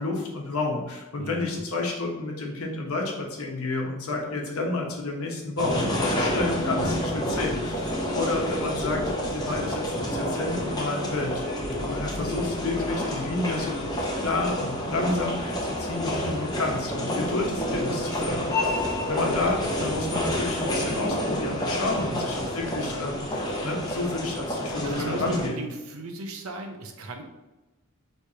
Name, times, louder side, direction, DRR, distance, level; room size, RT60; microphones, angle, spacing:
voice 1, 0.0-18.8 19.1-25.6, left 2 dB, 80° left, 0 dB, 0.9 m, -30 dB
voice 2, 1.2-1.7 5.8-6.1 6.9-7.2 11.7-11.9 17.1-17.2 18.8-19.1 21.8-23.0 24.8-27.2, right 1 dB, 75° right, 4 dB, 0.7 m, -37 dB
sound 1, 5.6-25.5, left 1 dB, 20° left, 0.7 m, -29 dB
4.8 x 3.2 x 2.8 m, 1.1 s
head